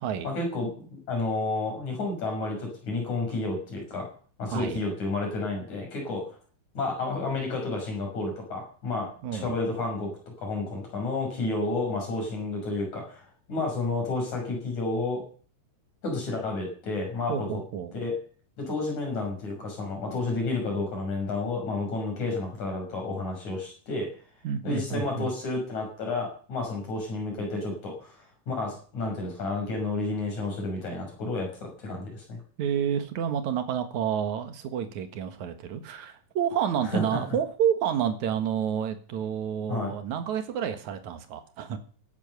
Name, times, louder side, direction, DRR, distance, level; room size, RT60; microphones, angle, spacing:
voice 1, 0.2-4.1 4.4-6.2 6.7-10.1 10.4-15.2 16.0-17.6 17.9-18.2 18.6-24.1 24.6-32.4 36.9-37.2 39.7-39.9, left 3 dB, 65° left, 1 dB, 7.7 m, -31 dB
voice 2, 4.5-4.8 9.2-9.6 17.3-17.9 24.4-25.3 32.6-41.8, right 8 dB, 70° right, 9 dB, 2.9 m, -29 dB
16.0 x 11.0 x 6.9 m, 0.43 s
omnidirectional pair, 3.5 m